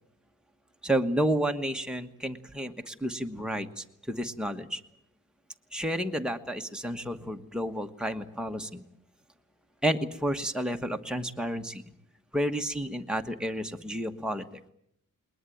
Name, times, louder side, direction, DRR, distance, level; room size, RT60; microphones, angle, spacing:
voice 1, 0.8-4.8 5.7-8.8 9.8-11.8 12.3-14.4, right 1 dB, ahead, 3 dB, 1.3 m, -31 dB
21.0 x 20.0 x 9.2 m, 0.75 s
wide cardioid pair, 165°, 32 cm